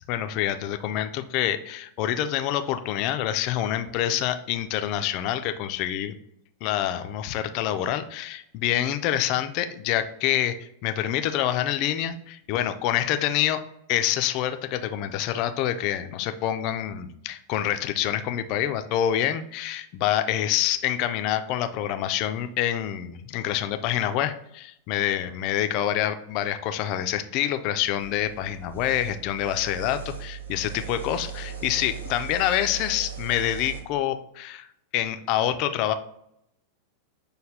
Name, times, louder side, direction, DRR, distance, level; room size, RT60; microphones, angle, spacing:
voice 1, 0.1-6.2 6.6-10.5 10.8-13.6 13.9-34.7 34.9-35.9, left 11 dB, 40° left, 9 dB, 0.4 m, -26 dB
sound 1, 28.0-33.8, right 8 dB, 75° right, 0.8 m, -38 dB
6.4 x 2.3 x 3.3 m, 0.77 s
figure-of-eight pair, 90°, 0 cm